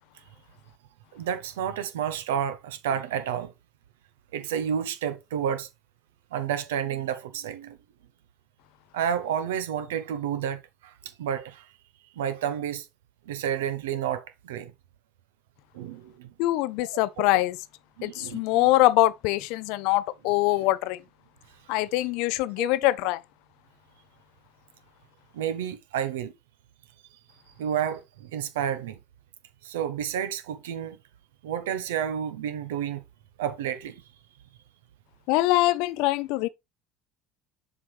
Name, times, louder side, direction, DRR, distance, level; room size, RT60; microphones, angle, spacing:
voice 1, 1.1-3.5 4.3-5.7 6.3-7.8 8.9-11.7 12.2-12.9 13.3-14.7 15.7-16.3 17.2-17.3 18.0-18.7 22.6-22.7 25.3-26.3 27.6-29.0 29.6-31.0 31.4-33.0 33.4-34.0, right 9 dB, 75° right, 0.8 m, -30 dB
voice 2, 16.4-17.6 18.0-21.0 21.7-23.2 35.3-36.5, left 17 dB, 65° left, 0.4 m, -23 dB
7.2 x 4.5 x 3.3 m
hypercardioid pair, 65°, 0 cm